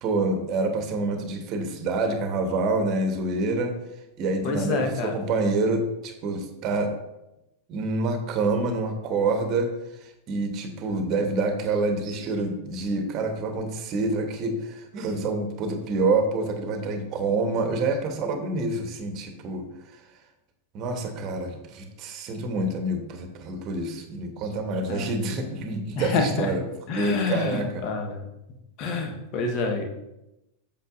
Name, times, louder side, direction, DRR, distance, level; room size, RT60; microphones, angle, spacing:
voice 1, 0.0-3.7 4.2-6.9 7.7-9.7 10.0-19.6 20.7-26.6 26.9-27.8, right 3 dB, 35° right, 6 dB, 1.0 m, -27 dB
voice 2, 4.4-5.2 24.9-25.2 26.0-26.5 26.9-28.2 28.8-29.9, left 3 dB, 40° left, 3 dB, 1.2 m, -27 dB
8.0 x 6.9 x 2.6 m, 0.91 s
figure-of-eight pair, 90°, 0 cm